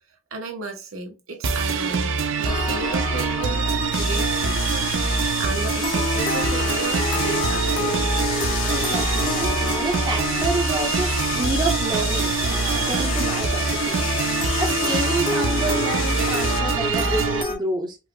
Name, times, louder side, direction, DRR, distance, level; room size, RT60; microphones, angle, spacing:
voice 1, 0.3-3.7 3.9-8.0, right 3 dB, 85° right, 0.9 m, -34 dB
sound 1, 1.4-17.4, right 5 dB, 65° right, 0.5 m, -24 dB
sound 2, 2.4-17.6, left 3 dB, 25° left, 0.5 m, -30 dB
sound 3, 3.9-16.6, left 7 dB, 70° left, 0.6 m, -31 dB
voice 2, 8.7-14.0 14.6-18.0, right 2 dB, 20° right, 0.6 m, -29 dB
4.7 x 2.0 x 2.2 m
head